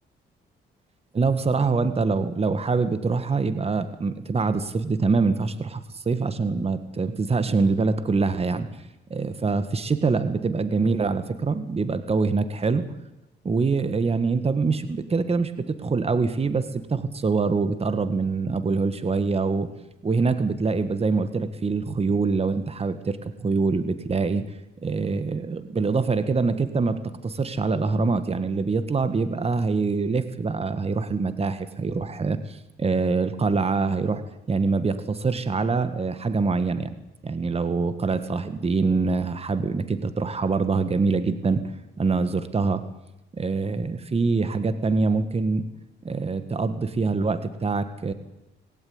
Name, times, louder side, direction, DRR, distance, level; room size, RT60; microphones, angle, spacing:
voice 1, 1.1-8.7 9.1-12.8 13.4-19.7 20.0-24.4 24.8-36.9 37.2-41.6 42.0-42.9 43.4-45.7 46.0-48.1, right 4 dB, 30° right, 11 dB, 1.7 m, -24 dB
20.0 x 17.5 x 9.7 m, 0.93 s
cardioid pair, 90°, 20 cm